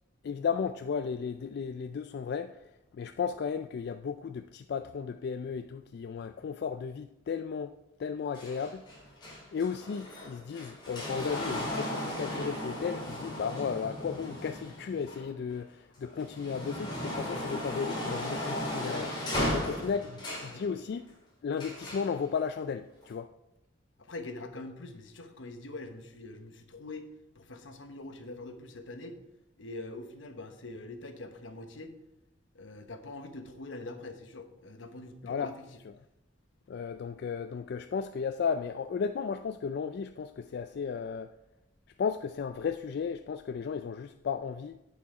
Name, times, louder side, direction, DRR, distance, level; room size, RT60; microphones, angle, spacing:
voice 1, 0.2-2.6 2.9-7.7 8.0-8.8 9.5-19.1 19.5-20.0 20.4-21.1 21.4-23.3 35.2-35.5 36.7-41.3 42.0-44.8, left 6 dB, 60° left, 0.3 m, -34 dB
sound 1, 8.3-15.5 16.0-20.6 21.6-22.1 23.0-23.1, left 1 dB, 25° left, 3.2 m, -36 dB
voice 2, 19.3-20.6 24.0-27.1 27.3-29.2 29.6-32.0 32.5-35.5, left 2 dB, 85° left, 1.1 m, -44 dB
8.5 x 7.0 x 4.8 m
head